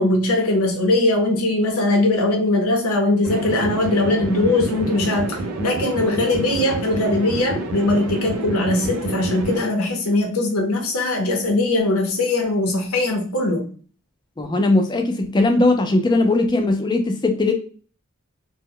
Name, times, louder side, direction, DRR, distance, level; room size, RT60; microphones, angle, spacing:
voice 1, 0.0-13.7, left 2 dB, 75° left, 1 dB, 0.6 m, -20 dB
sound 1, 3.2-9.6, right 2 dB, 85° right, 0.5 m, -28 dB
voice 2, 14.4-17.5, left 2 dB, 20° left, 5 dB, 0.3 m, -19 dB
2.0 x 2.0 x 3.6 m, 0.40 s
head